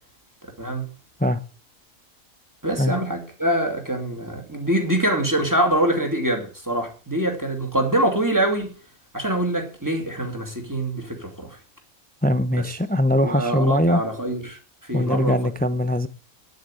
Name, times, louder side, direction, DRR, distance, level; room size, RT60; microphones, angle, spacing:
voice 1, 2.6-8.7 9.1-11.6 12.5-12.6 13.2-15.4, right 1 dB, 15° right, 2.5 m, -24 dB
voice 2, 12.2-14.0 14.9-16.1, left 1 dB, 15° left, 0.3 m, -21 dB
9.1 x 7.9 x 8.9 m
omnidirectional pair, 1.4 m